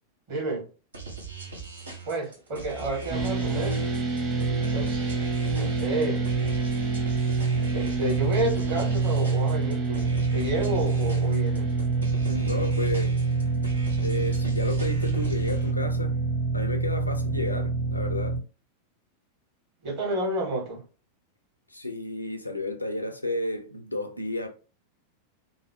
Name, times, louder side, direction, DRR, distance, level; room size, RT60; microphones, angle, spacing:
voice 1, 0.3-0.7 2.0-3.8 4.7-5.1 5.5-6.2 7.7-11.7 19.8-20.8, right 1 dB, 50° right, 1.4 m, -30 dB
sound 1, 0.9-15.7, right 3 dB, 75° right, 0.8 m, -40 dB
sound 2, 3.1-18.4, right 4 dB, 30° right, 0.9 m, -26 dB
voice 2, 12.2-13.2 14.0-16.2 16.5-18.4 21.7-24.5, left 2 dB, 85° left, 0.5 m, -32 dB
3.0 x 2.0 x 2.8 m
figure-of-eight pair, 90°, 0 cm